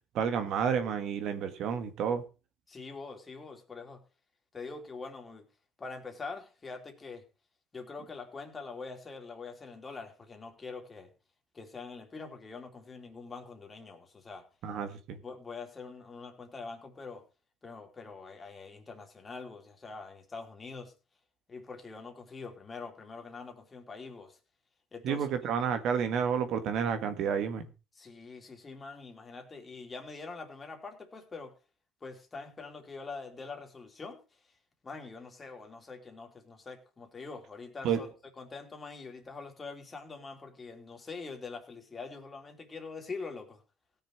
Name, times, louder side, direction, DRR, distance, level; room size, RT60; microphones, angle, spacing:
voice 1, 0.1-2.2 14.6-15.2 25.0-27.7 37.8-38.0, right 7 dB, 70° right, 1.6 m, -30 dB
voice 2, 2.7-4.0 4.5-5.5 5.8-7.3 7.7-11.1 11.5-14.4 15.2-17.2 17.6-20.9 21.5-24.4 24.9-25.3 27.9-31.5 32.0-34.2 34.8-38.1 38.4-43.6, left 4 dB, 25° left, 3.2 m, -44 dB
17.0 x 6.6 x 4.7 m
cardioid pair, 95°, 0 cm